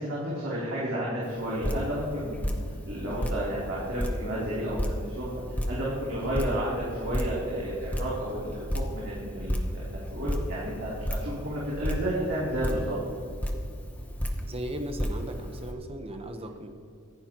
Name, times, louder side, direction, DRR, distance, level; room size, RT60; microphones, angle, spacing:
voice 1, 0.0-2.5 2.9-5.3 5.7-13.0, equal, 60° right, -9 dB, 3.4 m, -32 dB
Drip, 1.2-15.7, equal, 5° left, 0.9 m, -33 dB
voice 2, 14.5-16.7, right 1 dB, 25° right, 5 dB, 1.0 m, -37 dB
25.0 x 10.5 x 3.0 m, 2.5 s
head